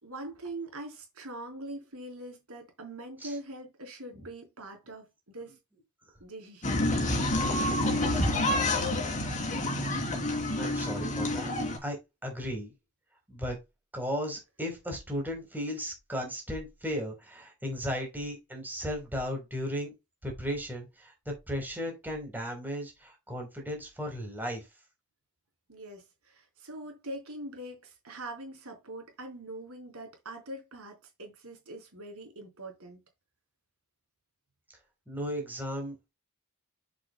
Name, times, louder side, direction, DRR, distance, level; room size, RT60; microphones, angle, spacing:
voice 1, 0.0-5.6 6.2-6.9 25.7-33.0, right 1 dB, 70° right, 3.9 m, -43 dB
sound 1, 6.6-11.8, left 1 dB, 35° left, 3.0 m, -28 dB
voice 2, 10.6-11.5 11.8-12.7 13.3-13.6 13.9-19.9 20.2-24.7 35.1-36.1, equal, 10° right, 3.8 m, -35 dB
8.2 x 7.6 x 2.2 m
head